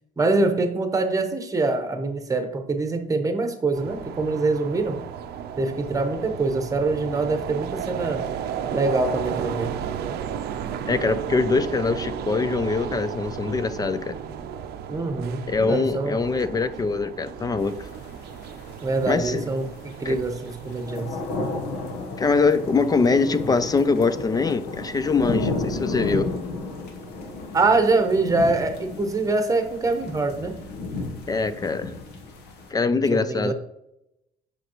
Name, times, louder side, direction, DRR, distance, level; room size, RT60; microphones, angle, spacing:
voice 1, 0.2-5.0 5.6-8.3 8.7-9.7 14.9-16.2 18.8-19.7 20.0-21.1 27.5-30.5 33.1-33.5, right 3 dB, 20° right, 6 dB, 0.9 m, -24 dB
sound 1, 3.7-21.0, right 8 dB, 70° right, 0.6 m, -34 dB
voice 2, 10.9-14.2 15.5-17.9 19.1-19.5 20.0-20.2 22.2-26.3 31.3-31.9 32.7-33.5, left 4 dB, 20° left, 13 dB, 0.4 m, -23 dB
sound 2, 17.6-32.7, left 2 dB, 85° left, 1.1 m, -33 dB
6.5 x 5.0 x 3.0 m, 0.84 s
cardioid pair, 110°, 17 cm